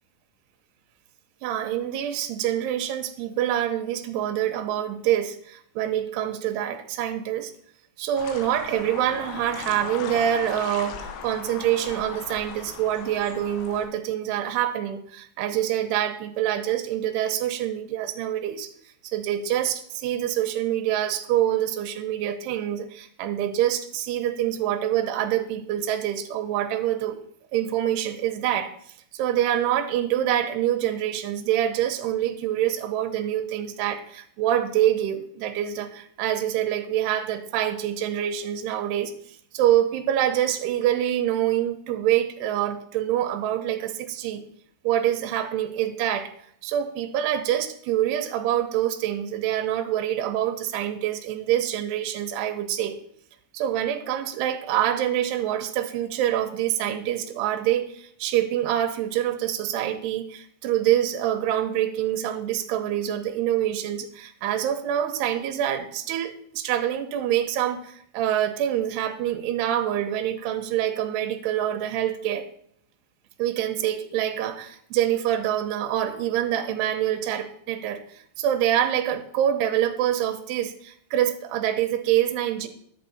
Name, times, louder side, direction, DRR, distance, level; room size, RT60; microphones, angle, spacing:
voice 1, 1.4-7.5 8.0-18.7 19.0-27.2 27.5-28.7 29.1-39.1 39.5-44.4 44.8-46.3 46.6-53.0 53.5-72.5 73.4-82.7, right 11 dB, 80° right, 5 dB, 2.8 m, -26 dB
sound 1, 8.2-13.9, left 7 dB, 85° left, 3.3 m, -38 dB
10.5 x 8.5 x 4.2 m, 0.64 s
omnidirectional pair, 5.1 m